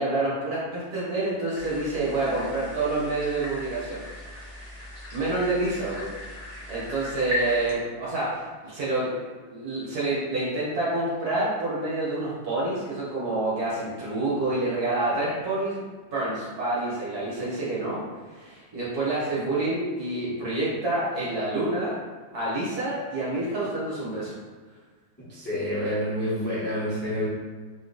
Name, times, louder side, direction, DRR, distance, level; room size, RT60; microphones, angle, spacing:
voice 1, 0.0-4.0 5.1-6.1 6.7-9.2 9.5-15.8 16.1-18.0 18.3-22.0 22.3-24.3, right 2 dB, 50° right, -7 dB, 1.6 m, -28 dB
sound 1, 1.5-7.7, left 1 dB, 75° right, 0.3 m, -37 dB
voice 2, 25.3-27.3, equal, 5° left, -10 dB, 0.9 m, -28 dB
3.7 x 3.0 x 3.9 m, 1.4 s
omnidirectional pair, 2.2 m